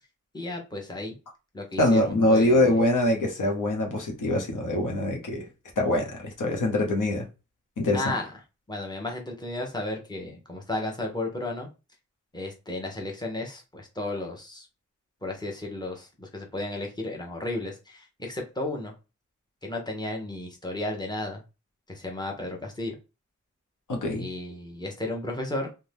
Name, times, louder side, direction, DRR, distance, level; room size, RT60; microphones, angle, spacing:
voice 1, 0.3-1.1 1.5-2.8 7.9-8.3 8.7-11.7 12.3-14.7 15.2-18.9 19.6-21.4 21.9-22.9 24.2-25.7, left 2 dB, 15° left, 0.8 m, -33 dB
voice 2, 1.8-5.5 5.8-7.3 7.8-8.0 23.9-24.3, left 1 dB, 85° left, 0.8 m, -24 dB
2.7 x 2.2 x 3.3 m
wide cardioid pair, 75°, 31 cm